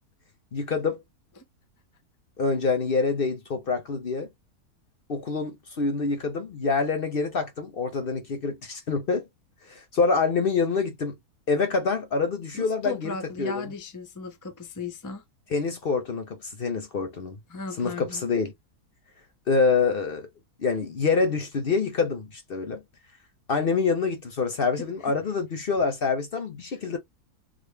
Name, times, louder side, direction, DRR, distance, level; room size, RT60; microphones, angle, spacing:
voice 1, 0.5-1.0 2.4-4.3 5.1-9.3 9.7-11.1 11.5-13.7 15.5-17.4 17.8-18.5 19.5-20.3 20.6-22.8 23.5-27.0, left 4 dB, 50° left, 0.7 m, -26 dB
voice 2, 12.5-15.2 17.5-18.2 24.8-24.9, left 3 dB, 30° left, 0.3 m, -36 dB
3.8 x 2.1 x 3.2 m
omnidirectional pair, 1.7 m